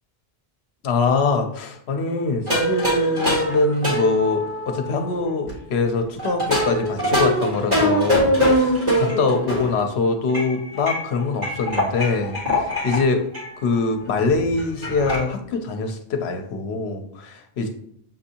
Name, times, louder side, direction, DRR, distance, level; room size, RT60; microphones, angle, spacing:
voice 1, 0.8-13.2 13.6-17.7, left 4 dB, 80° left, 5 dB, 0.9 m, -23 dB
sound 1, 2.5-5.5 6.2-9.8 10.3-13.0 13.3-13.5 13.8-13.9 14.1-15.2, equal, 40° right, 1.6 m, -23 dB
7.2 x 2.6 x 2.8 m, 0.68 s
omnidirectional pair, 1.1 m